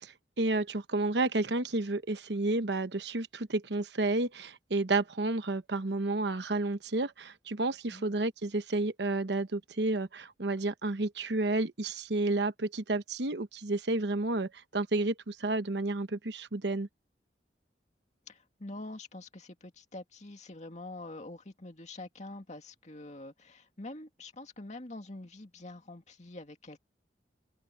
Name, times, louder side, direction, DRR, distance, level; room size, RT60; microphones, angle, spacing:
voice 1, 0.0-16.9, right 2 dB, 75° right, 1.1 m, -31 dB
voice 2, 18.3-26.8, left 2 dB, 40° left, 2.3 m, -45 dB
open air
head